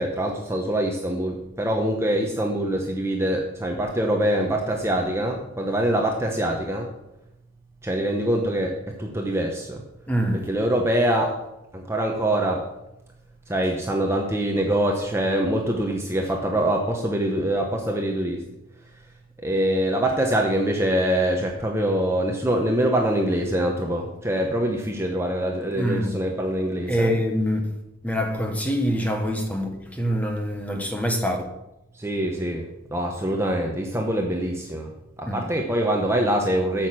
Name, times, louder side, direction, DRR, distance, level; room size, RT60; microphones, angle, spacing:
voice 1, 0.0-6.9 7.8-9.8 10.5-11.3 11.7-12.6 13.5-18.4 19.4-27.1 31.9-34.9 35.2-36.9, right 1 dB, 10° right, 0.9 m, -24 dB
voice 2, 10.1-10.5 25.8-26.1 26.9-27.6 28.0-31.4 35.3-35.4, equal, 5° left, 1.2 m, -25 dB
9.0 x 6.5 x 7.5 m
head